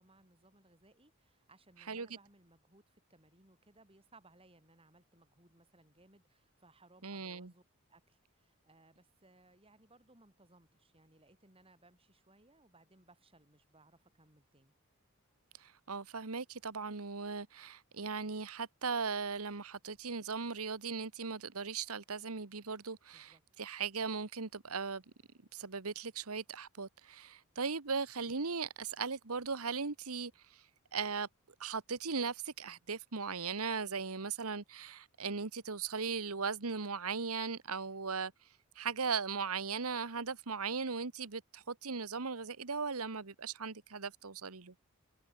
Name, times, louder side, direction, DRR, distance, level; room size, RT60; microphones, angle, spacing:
voice 1, 0.0-7.6 7.9-14.7 23.1-23.4, right 2 dB, 25° right, 7.0 m, -65 dB
voice 2, 7.0-7.5 15.6-25.0 25.5-30.6 30.9-31.3 31.6-38.3 38.7-44.7, right 5 dB, 85° right, 1.4 m, -38 dB
head